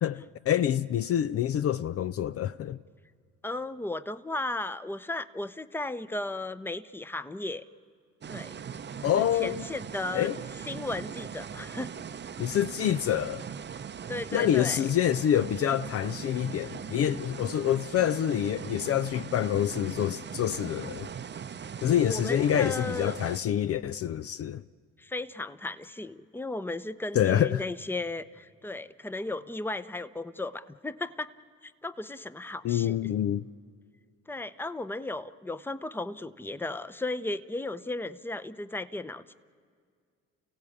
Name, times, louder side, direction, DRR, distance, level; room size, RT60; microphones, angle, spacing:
voice 1, 0.0-2.8 9.0-9.6 10.1-10.4 12.4-13.4 14.3-21.1 21.8-24.6 27.1-27.6 32.6-33.5, left 10 dB, 50° left, 0.5 m, -27 dB
voice 2, 3.4-7.6 8.3-8.6 9.0-10.3 10.7-11.9 14.1-14.8 22.1-23.1 25.0-31.3 31.6-33.0 34.3-39.3, left 2 dB, 5° left, 0.8 m, -35 dB
sound 1, 8.2-23.4, right 7 dB, 35° right, 0.7 m, -40 dB
29.5 x 16.5 x 8.5 m
hypercardioid pair, 55°, 31 cm